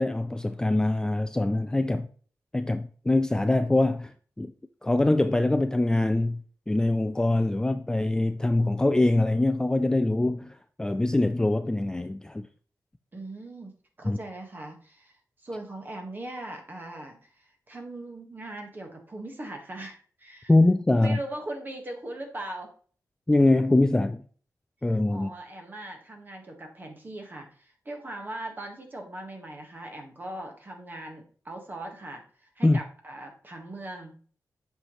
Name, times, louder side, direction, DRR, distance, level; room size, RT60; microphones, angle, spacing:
voice 1, 0.0-2.1 2.5-4.5 4.8-12.5 14.0-14.2 20.5-21.2 23.3-24.2 24.8-25.3 32.6-32.8, left 2 dB, 10° left, 0.3 m, -23 dB
voice 2, 13.1-13.7 14.0-20.5 20.9-22.7 25.1-34.2, right 1 dB, 30° right, 1.5 m, -40 dB
7.9 x 5.8 x 3.1 m
wide cardioid pair, 125°, 6 cm